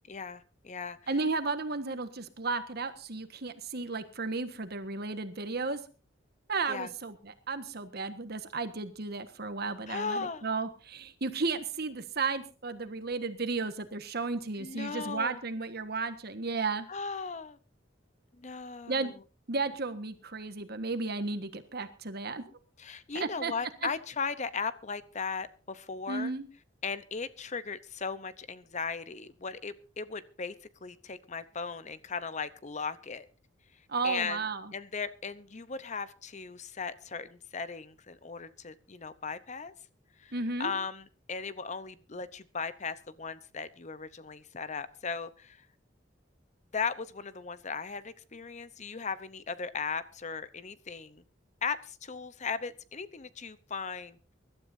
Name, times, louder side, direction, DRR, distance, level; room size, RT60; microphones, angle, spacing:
voice 1, 0.1-1.0 6.7-6.9 9.9-10.4 14.6-15.4 16.9-17.6 18.4-19.2 22.8-26.3 26.8-30.5 30.8-33.3 34.0-34.4 34.7-39.7 40.2-40.3 40.6-45.6 46.7-51.2 51.6-54.3, left 5 dB, 40° left, 14 dB, 0.8 m, -37 dB
voice 2, 1.1-5.8 6.5-16.9 18.9-19.1 19.5-22.5 23.1-23.5 23.8-23.9 26.1-26.5 33.9-34.7 40.3-40.7, right 3 dB, 55° right, 10 dB, 1.5 m, -34 dB
24.5 x 12.5 x 2.7 m, 0.34 s
head